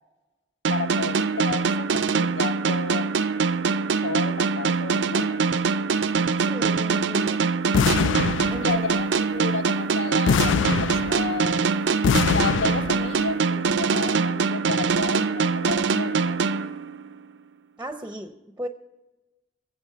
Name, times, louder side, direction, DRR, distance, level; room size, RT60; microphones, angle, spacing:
sound 1, 0.6-17.2, right 5 dB, 80° right, 0.5 m, -24 dB
voice 1, 0.7-3.1 4.0-5.4 8.6-11.7 12.2-16.4, left 4 dB, 75° left, 11 dB, 0.8 m, -32 dB
voice 2, 6.4-7.5 8.5-8.7 17.8-18.7, equal, 10° right, 7 dB, 0.6 m, -35 dB
sound 2, 7.7-9.0 10.3-11.5 12.0-13.2, left 7 dB, 90° left, 0.3 m, -24 dB
21.0 x 7.8 x 4.6 m, 1.1 s
head